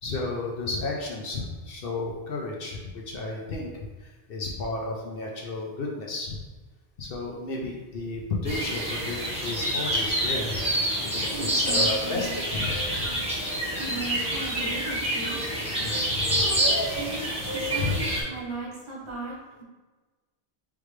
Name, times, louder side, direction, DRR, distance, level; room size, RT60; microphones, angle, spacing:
voice 1, 0.0-3.7 4.0-6.4 7.0-10.6 11.0-13.1 15.8-16.5 17.8-17.9, left 3 dB, 65° left, -1 dB, 0.9 m, -32 dB
sound 1, 8.4-18.2, right 1 dB, 5° right, 1.3 m, -27 dB
voice 2, 11.3-12.4 13.8-15.4 16.3-19.6, right 2 dB, 30° right, -8 dB, 1.5 m, -37 dB
4.8 x 3.5 x 3.2 m, 1.2 s
omnidirectional pair, 1.0 m